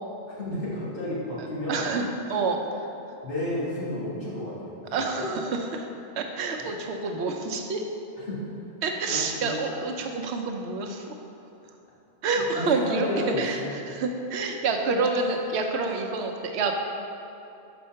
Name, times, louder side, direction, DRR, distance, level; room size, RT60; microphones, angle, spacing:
voice 1, 0.3-1.9 3.2-5.3 6.6-6.7 8.3-8.4 9.0-9.5 12.5-14.0, left 1 dB, 55° left, -9 dB, 1.9 m, -32 dB
voice 2, 1.7-2.6 4.9-5.4 5.7-5.9 6.2-7.8 8.8-11.1 12.2-16.7, right 4 dB, 85° right, 3 dB, 0.9 m, -28 dB
5.4 x 4.2 x 5.6 m, 2.8 s
omnidirectional pair, 1.1 m